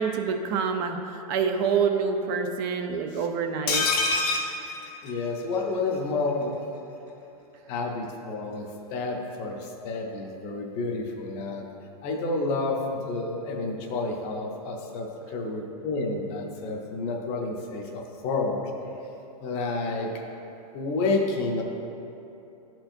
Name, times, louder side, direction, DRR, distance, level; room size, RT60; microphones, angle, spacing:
voice 1, 0.0-3.8, right 6 dB, 35° right, 6 dB, 0.4 m, -27 dB
sound 1, 3.7-5.6 5.9-6.0 6.3-6.4, left 3 dB, 75° left, 1.4 m, -26 dB
voice 2, 5.0-6.6 7.7-11.7 12.0-18.6 19.4-20.1 20.7-21.6, left 3 dB, 35° left, 2 dB, 0.7 m, -30 dB
11.0 x 4.4 x 2.6 m, 2.9 s
supercardioid pair, 150°, 20 cm